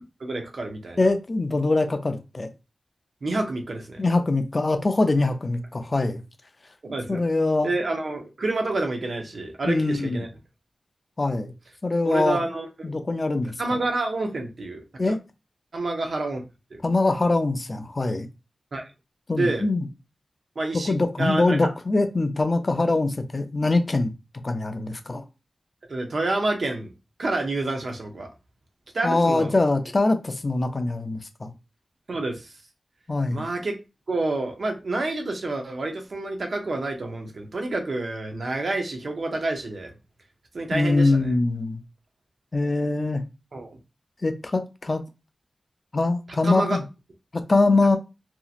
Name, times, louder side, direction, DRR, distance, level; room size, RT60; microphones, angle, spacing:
voice 1, 0.2-1.0 3.2-4.0 6.8-7.2 7.6-10.3 12.0-12.9 13.6-14.8 15.1-15.2 15.7-16.4 16.7-16.8 18.7-18.9 19.3-19.7 20.6-21.7 25.9-26.9 27.2-28.3 28.9-29.6 32.1-32.5 33.3-33.8 34.1-39.9 40.5-41.3 43.5-43.8 46.4-46.8, right 2 dB, 60° right, 0.7 m, -28 dB
voice 2, 1.0-2.5 4.0-6.2 7.1-7.7 9.6-10.2 11.2-11.5 11.8-12.4 12.8-13.5 15.0-15.2 16.8-18.3 19.3-19.9 20.7-24.1 24.4-25.2 29.0-31.5 33.1-33.4 40.7-41.8 42.5-43.2 44.2-45.0 45.9-46.8 47.3-48.0, left 2 dB, 35° left, 0.4 m, -23 dB
2.9 x 2.7 x 2.4 m
wide cardioid pair, 105°, 0 cm